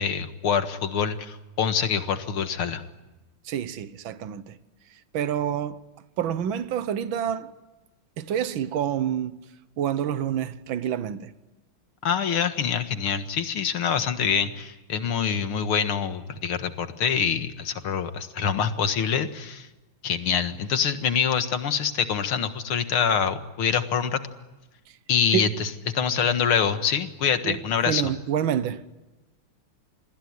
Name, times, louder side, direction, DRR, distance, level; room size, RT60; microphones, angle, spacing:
voice 1, 0.0-2.8 12.0-19.7 20.0-24.2 25.1-25.7 25.9-28.1, left 7 dB, 85° left, 2.5 m, -25 dB
voice 2, 3.5-4.5 5.1-5.8 6.2-7.5 8.2-9.4 9.8-11.3 25.3-25.4 27.4-28.8, right 9 dB, 70° right, 1.8 m, -27 dB
28.0 x 21.0 x 9.6 m
omnidirectional pair, 2.3 m